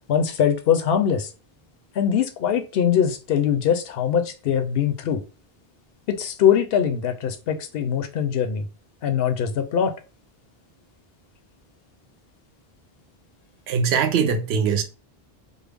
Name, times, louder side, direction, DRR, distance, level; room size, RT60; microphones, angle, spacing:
voice 1, 0.1-1.3 2.0-5.2 6.1-8.6 9.0-9.9, left 8 dB, 75° left, 0.8 m, -22 dB
voice 2, 13.7-14.8, right 6 dB, 85° right, 0.8 m, -21 dB
3.4 x 2.0 x 3.3 m
omnidirectional pair, 1.0 m